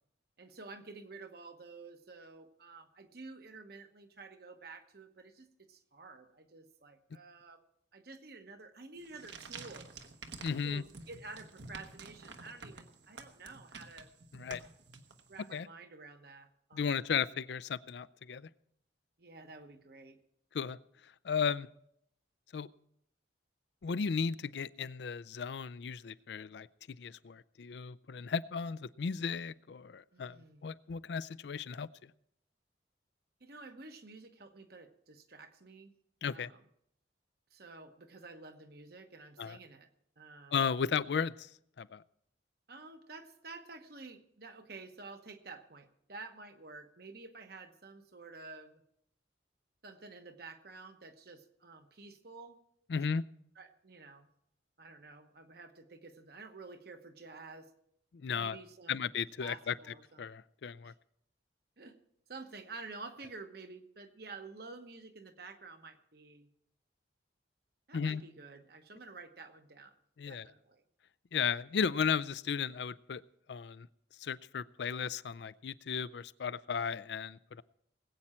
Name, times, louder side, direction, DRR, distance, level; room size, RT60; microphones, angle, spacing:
voice 1, 0.4-7.6 7.9-9.9 10.6-14.1 15.3-16.9 19.2-20.2 30.1-30.6 33.4-35.9 36.3-36.6 37.5-39.9 40.2-40.5 42.7-48.8 49.8-52.6 53.6-54.3 54.8-57.7 58.3-59.1 59.4-60.3 60.8-60.9 61.8-62.0 62.3-66.5 67.9-69.9 70.3-70.8, right 3 dB, 55° right, 7 dB, 1.1 m, -50 dB
sound 1, 9.0-15.5, right 4 dB, 75° right, 1.2 m, -50 dB
voice 2, 10.4-10.8 14.3-14.6 15.5-15.7 16.7-18.5 20.5-20.8 21.2-21.7 22.5-22.7 23.8-30.4 30.6-32.1 36.2-36.5 39.4-39.6 40.5-41.5 41.8-42.0 52.9-53.2 58.1-58.6 58.9-59.7 60.2-60.9 67.9-68.2 70.2-70.5 71.3-73.2 73.5-73.9 74.2-77.6, left 6 dB, 70° left, 18 dB, 0.4 m, -35 dB
20.0 x 8.7 x 4.4 m, 0.72 s
head